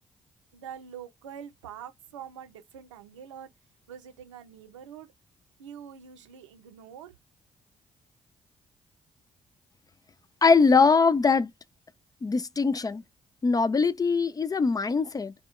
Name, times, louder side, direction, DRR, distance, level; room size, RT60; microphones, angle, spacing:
voice 1, 0.5-3.5 3.9-5.1 5.6-7.1, right 8 dB, 90° right, 0.6 m, -45 dB
voice 2, 10.4-11.5 12.2-13.0 13.4-15.3, left 4 dB, 25° left, 0.4 m, -22 dB
2.1 x 2.1 x 3.6 m
hypercardioid pair, 40°, 15 cm